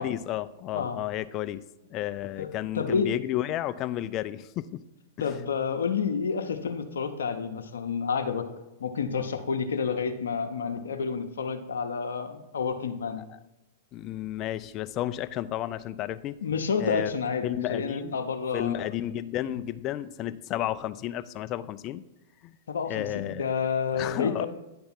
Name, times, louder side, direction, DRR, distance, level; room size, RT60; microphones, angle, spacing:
voice 1, 0.0-1.6 1.9-4.8 13.3-13.4 13.9-16.4 16.8-17.1 17.4-18.2 18.5-22.0 22.4-22.5 22.9-23.4 23.9-24.5, left 13 dB, 40° left, 14 dB, 0.4 m, -32 dB
voice 2, 2.4-3.1 5.2-8.5 8.8-13.2 16.4-18.8 19.4-19.6 22.7-24.5, left 5 dB, 80° left, 5 dB, 0.7 m, -29 dB
9.7 x 3.4 x 5.8 m, 0.96 s
hypercardioid pair, 115°, 0 cm